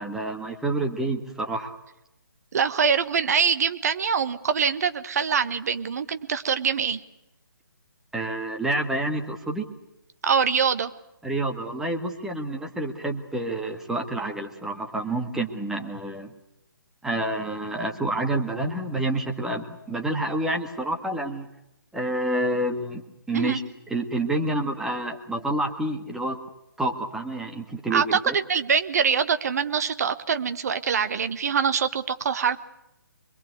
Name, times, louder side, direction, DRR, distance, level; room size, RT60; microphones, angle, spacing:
voice 1, 0.0-1.7 8.1-9.7 11.2-16.3 17.0-21.5 21.9-23.6 23.9-26.4 26.8-28.4, right 1 dB, 5° right, 2 dB, 1.8 m, -28 dB
voice 2, 2.5-7.0 10.2-10.9 23.3-23.6 27.9-32.6, right 6 dB, 45° right, 11 dB, 1.5 m, -24 dB
25.5 x 22.5 x 8.2 m, 0.84 s
figure-of-eight pair, 135°, 11 cm